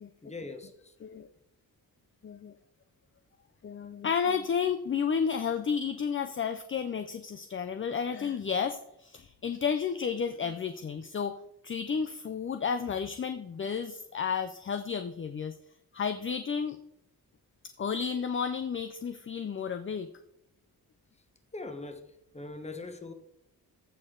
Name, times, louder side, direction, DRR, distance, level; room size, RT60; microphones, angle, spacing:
voice 1, 0.2-0.9 21.5-23.1, left 3 dB, 15° left, 7 dB, 1.1 m, -42 dB
voice 2, 2.2-2.5 3.6-11.4 11.6-15.6 15.9-16.8 17.8-20.1, left 6 dB, 35° left, 9 dB, 0.4 m, -32 dB
14.5 x 6.3 x 3.8 m, 0.82 s
wide cardioid pair, 155°, 38 cm